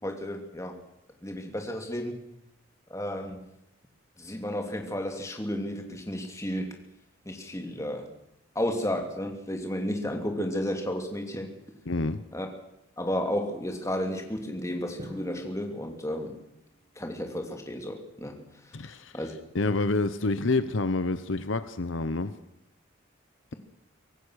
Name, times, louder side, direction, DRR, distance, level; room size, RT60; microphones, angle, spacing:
voice 1, 0.0-0.8 1.2-2.2 2.9-3.4 4.2-6.7 7.3-8.1 8.5-11.5 12.3-12.5 13.0-16.3 17.0-18.4 19.1-19.3, equal, 15° left, 3 dB, 2.8 m, -32 dB
voice 2, 11.9-12.2 18.7-19.2 19.5-22.3, left 3 dB, 70° left, 13 dB, 0.9 m, -28 dB
Drum, 15.0-17.1, right 1 dB, 30° right, 2.6 m, -47 dB
24.5 x 17.5 x 6.5 m, 0.84 s
head